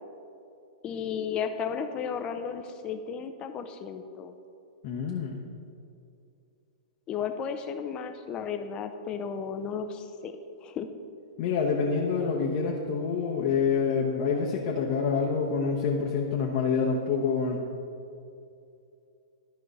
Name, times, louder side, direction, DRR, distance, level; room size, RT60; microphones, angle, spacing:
voice 1, 0.8-4.3 7.1-10.3 10.6-10.9, left 7 dB, 30° left, 8 dB, 0.6 m, -34 dB
voice 2, 4.8-5.4 11.4-17.6, left 5 dB, 50° left, -2 dB, 1.0 m, -27 dB
12.5 x 5.2 x 4.1 m, 2.6 s
hypercardioid pair, 115°, 3 cm